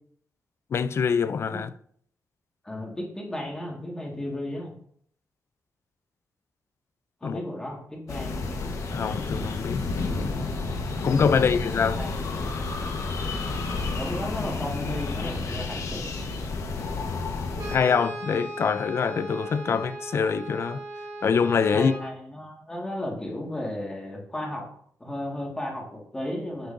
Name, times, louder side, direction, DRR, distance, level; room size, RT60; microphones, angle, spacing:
voice 1, 0.7-1.7 7.2-7.4 8.9-9.8 11.0-12.0 17.7-20.8 21.2-21.9, left 6 dB, 45° left, 0.4 m, -24 dB
voice 2, 2.6-4.7 7.2-8.4 11.3-11.5 11.9-12.1 14.0-16.0 21.7-24.7 25.0-26.7, left 1 dB, 10° left, 1.9 m, -34 dB
sound 1, 8.1-17.8, left 3 dB, 65° left, 1.3 m, -30 dB
Brass instrument, 17.6-22.1, right 2 dB, 85° right, 1.8 m, -38 dB
10.5 x 7.8 x 2.7 m
wide cardioid pair, 170°, 6 cm